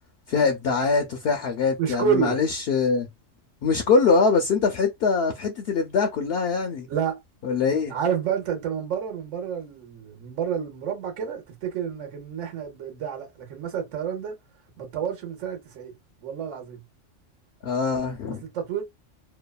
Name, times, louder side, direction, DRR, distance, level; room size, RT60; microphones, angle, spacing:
voice 1, 0.3-3.1 3.6-6.9 7.4-7.9 17.6-18.4, left 4 dB, 60° left, 0.7 m, -23 dB
voice 2, 1.8-2.4 6.9-7.2 7.9-14.4 14.8-15.9 16.2-16.8 18.4-18.8, right 8 dB, 75° right, 1.2 m, -29 dB
2.8 x 2.2 x 2.3 m
omnidirectional pair, 1.3 m